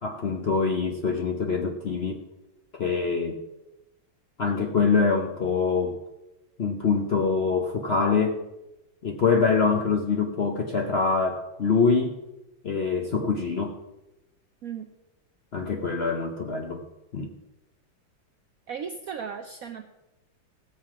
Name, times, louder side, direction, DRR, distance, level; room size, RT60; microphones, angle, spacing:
voice 1, 0.0-2.2 2.7-3.4 4.4-6.0 6.6-8.4 9.0-12.2 12.6-13.8 15.5-16.8 17.1-17.3, left 5 dB, 60° left, 3 dB, 0.6 m, -24 dB
voice 2, 18.7-19.8, right 7 dB, 85° right, 7 dB, 0.7 m, -36 dB
17.0 x 7.5 x 4.8 m, 0.99 s
omnidirectional pair, 2.3 m